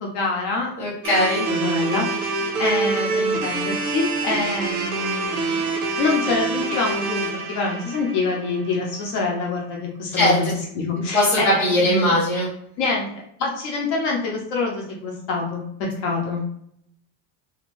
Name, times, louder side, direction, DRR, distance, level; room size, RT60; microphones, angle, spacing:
voice 1, 0.0-0.7 1.5-5.7 6.0-12.1 12.8-13.1 13.4-15.7 16.0-16.4, left 3 dB, 40° left, -1 dB, 0.7 m, -26 dB
voice 2, 0.8-1.4 10.2-10.5 11.0-12.5, left 1 dB, 5° left, -9 dB, 0.6 m, -20 dB
sound 1, 1.0-9.2, right 3 dB, 65° right, 0.8 m, -26 dB
2.8 x 2.6 x 3.0 m, 0.70 s
supercardioid pair, 175°, 47 cm